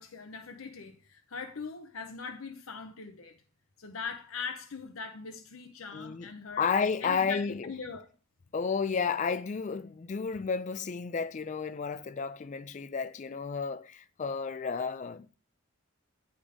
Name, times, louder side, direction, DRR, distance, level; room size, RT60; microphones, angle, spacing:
voice 1, 0.0-3.4 3.8-6.7 7.0-8.1, left 5 dB, 75° left, 0.7 m, -41 dB
voice 2, 5.9-6.3 6.6-7.7 8.5-15.4, left 5 dB, 35° left, 0.3 m, -32 dB
10.0 x 3.6 x 4.9 m
head